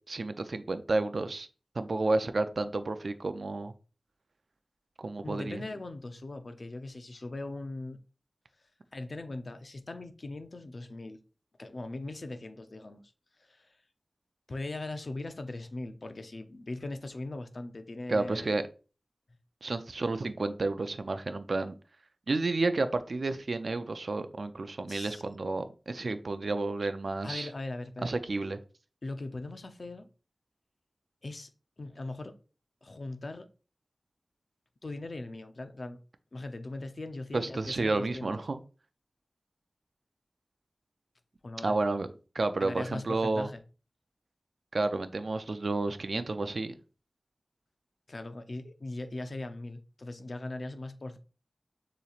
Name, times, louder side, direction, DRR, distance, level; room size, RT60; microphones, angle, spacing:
voice 1, 0.1-1.5 1.8-3.7 5.0-5.6 18.1-18.6 19.6-21.7 22.3-27.5 28.0-28.6 37.3-38.6 41.6-42.1 42.3-43.5 44.7-46.7, right 3 dB, 75° right, 0.4 m, -31 dB
voice 2, 5.2-8.0 8.9-11.2 11.6-13.0 13.4-13.7 14.5-18.5 24.9-25.2 27.2-28.2 29.0-30.1 31.2-31.5 31.8-32.4 32.8-33.5 34.8-36.0 36.3-38.4 41.4-41.7 42.6-43.6 48.1-51.2, left 2 dB, 65° left, 0.6 m, -40 dB
6.9 x 3.1 x 2.4 m
wide cardioid pair, 50°, 0 cm